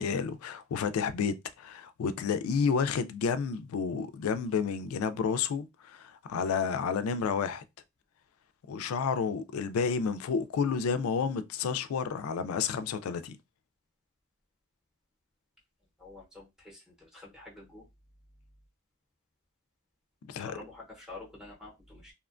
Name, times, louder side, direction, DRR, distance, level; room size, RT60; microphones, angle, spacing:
voice 1, 0.0-7.6 8.7-13.4 20.3-20.6, left 6 dB, 85° left, 0.3 m, -30 dB
voice 2, 16.0-16.4 17.1-17.8 20.4-22.1, left 2 dB, 5° right, 0.7 m, -47 dB
2.8 x 2.1 x 2.4 m
head